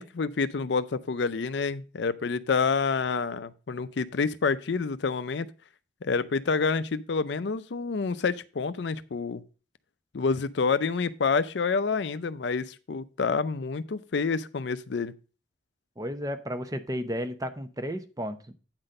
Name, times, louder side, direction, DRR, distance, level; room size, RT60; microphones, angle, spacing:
voice 1, 0.0-5.5 6.0-9.4 10.1-15.1, left 4 dB, 65° left, 0.5 m, -28 dB
voice 2, 16.0-18.5, equal, 20° right, 0.7 m, -33 dB
8.8 x 4.1 x 6.4 m
head